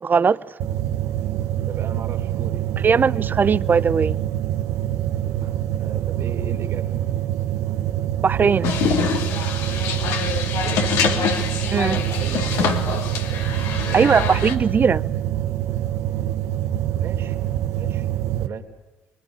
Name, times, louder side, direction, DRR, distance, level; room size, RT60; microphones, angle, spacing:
voice 1, 0.0-0.4 2.8-4.2 8.2-8.7 11.7-12.0 13.9-15.0, right 6 dB, 40° right, 0.9 m, -19 dB
sound 1, 0.6-18.5, right 12 dB, 75° right, 1.5 m, -25 dB
voice 2, 1.7-3.2 5.8-7.0 10.6-11.3 12.0-13.1 13.9-14.4 16.8-17.4 17.7-18.1 18.4-18.7, right 7 dB, 60° right, 3.7 m, -36 dB
sound 2, 8.6-14.5, left 7 dB, 80° left, 3.1 m, -25 dB
27.0 x 23.0 x 8.6 m
supercardioid pair, 65°, 5 cm